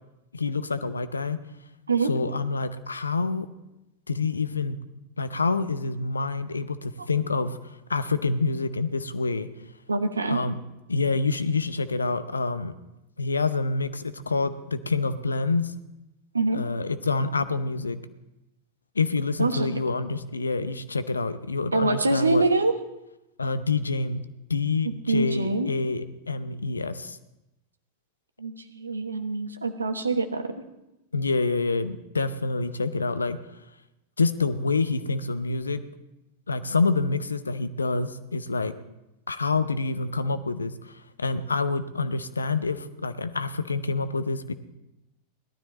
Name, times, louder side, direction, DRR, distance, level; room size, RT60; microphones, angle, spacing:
voice 1, 0.3-1.4 2.1-3.5 4.1-4.8 5.2-7.6 7.9-9.5 10.3-10.6 10.9-12.7 13.2-15.7 16.5-18.0 19.0-22.4 23.4-24.2 24.5-27.2 31.1-33.4 34.2-35.8 36.5-38.7 39.3-44.5, left 3 dB, 75° left, 13 dB, 0.7 m, -27 dB
voice 2, 9.9-10.4 16.3-16.6 19.4-19.7 21.7-22.7 24.8-25.7 28.4-30.5, right 3 dB, 80° right, 8 dB, 1.0 m, -25 dB
17.5 x 12.5 x 4.2 m, 0.93 s
figure-of-eight pair, 90°, 0 cm